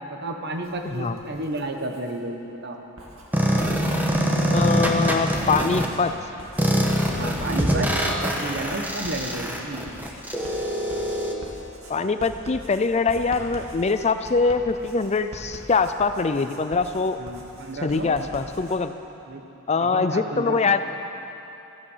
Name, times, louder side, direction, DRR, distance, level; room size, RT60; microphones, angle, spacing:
voice 1, 0.0-2.8 7.1-9.9 17.2-18.2 19.3-19.5 19.8-20.8, right 1 dB, 55° right, 4 dB, 1.3 m, -32 dB
Writing, 0.5-2.2 2.8-18.8, right 1 dB, 85° right, 2.2 m, -44 dB
sound 1, 3.3-5.9 6.6-11.3, equal, 10° right, 1.2 m, -23 dB
voice 2, 4.5-6.1 11.9-17.2 17.8-19.0 19.7-20.8, left 4 dB, 30° left, 10 dB, 0.5 m, -23 dB
14.5 x 14.5 x 5.7 m, 2.9 s
head